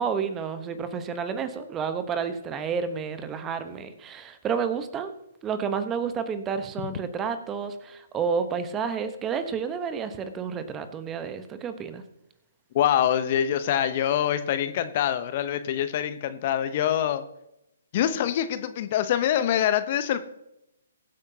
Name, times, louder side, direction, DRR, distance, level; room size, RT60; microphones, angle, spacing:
voice 1, 0.0-5.1 5.4-12.0, right 6 dB, 15° right, 10 dB, 1.0 m, -30 dB
voice 2, 12.7-17.2 17.9-20.2, left 10 dB, 40° left, 12 dB, 0.8 m, -25 dB
21.5 x 8.2 x 2.8 m, 0.86 s
figure-of-eight pair, 130°, 0 cm